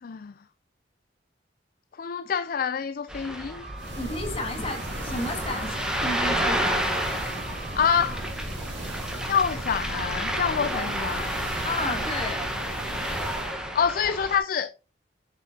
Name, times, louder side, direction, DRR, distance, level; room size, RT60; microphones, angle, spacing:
voice 1, 0.0-0.3 1.9-3.6 7.7-8.2 9.2-11.3 13.7-14.7, left 7 dB, 50° left, 0.4 m, -26 dB
Ocean, 3.1-14.4, equal, 5° right, 1.2 m, -31 dB
Wind instrument woodwind instrument, 3.5-8.3, right 4 dB, 50° right, 3.3 m, -45 dB
sound 1, 3.8-13.6, right 1 dB, 75° right, 2.3 m, -36 dB
voice 2, 4.0-7.2 11.6-12.4, left 2 dB, 30° left, 1.9 m, -33 dB
7.4 x 6.2 x 2.7 m
head